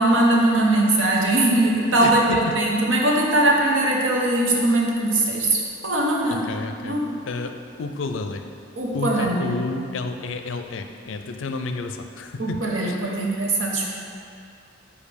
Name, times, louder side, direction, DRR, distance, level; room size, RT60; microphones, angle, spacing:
voice 1, 0.0-6.5 6.8-7.1 8.8-9.6 12.4-13.9, right 1 dB, 85° right, -1 dB, 1.0 m, -21 dB
voice 2, 1.9-2.4 2.6-2.8 6.3-7.0 7.3-8.4 8.9-12.6 12.8-13.2, left 3 dB, 80° left, 7 dB, 0.4 m, -31 dB
5.2 x 4.8 x 5.1 m, 2.3 s
head